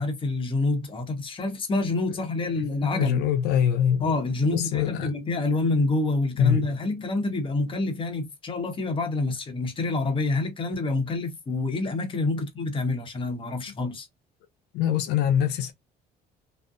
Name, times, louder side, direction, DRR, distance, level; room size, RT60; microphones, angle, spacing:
voice 1, 0.0-3.3 4.0-14.1, left 2 dB, 30° left, 0.9 m, -27 dB
voice 2, 2.5-4.1 4.5-5.1 6.4-6.7 14.7-15.7, left 9 dB, 80° left, 0.4 m, -24 dB
2.6 x 2.0 x 2.4 m
cardioid pair, 110°, 17 cm